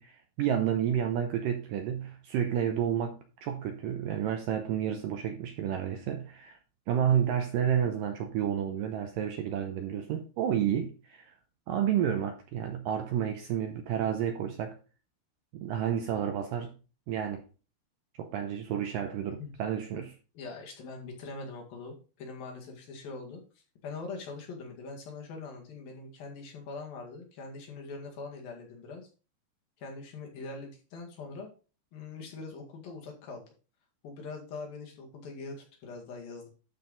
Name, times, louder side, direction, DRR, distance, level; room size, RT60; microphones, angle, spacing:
voice 1, 0.0-6.6 6.9-11.3 11.7-14.8 15.5-16.8 17.1-17.4 18.2-20.1, right 9 dB, 80° right, 2.0 m, -30 dB
voice 2, 20.4-29.1 29.8-31.5 31.9-33.5 34.0-36.5, left 3 dB, 65° left, 3.6 m, -42 dB
12.0 x 4.5 x 3.9 m
omnidirectional pair, 4.7 m